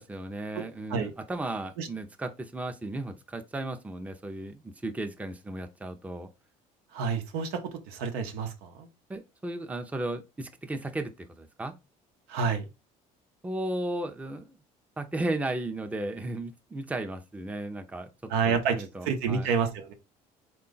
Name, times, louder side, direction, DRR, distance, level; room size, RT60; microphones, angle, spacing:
voice 1, 0.0-6.3 9.1-11.7 13.4-14.6 15.0-18.1 18.5-19.5, right 2 dB, 10° right, 0.5 m, -35 dB
voice 2, 6.9-7.6 7.9-8.9 12.3-12.6 18.3-19.9, right 6 dB, 85° right, 0.8 m, -29 dB
3.7 x 2.3 x 3.8 m
supercardioid pair, 85°, 16 cm